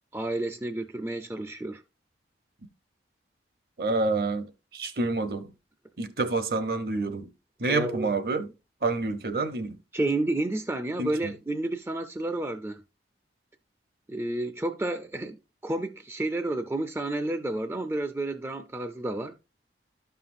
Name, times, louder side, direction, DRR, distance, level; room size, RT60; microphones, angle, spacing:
voice 1, 0.1-1.8 7.7-8.1 9.9-12.8 14.1-19.4, right 2 dB, 15° right, 0.4 m, -31 dB
voice 2, 3.8-4.5 4.7-5.5 6.0-7.3 7.6-8.5 8.8-9.8 11.0-11.3, right 3 dB, 55° right, 0.8 m, -28 dB
12.5 x 5.6 x 2.5 m
head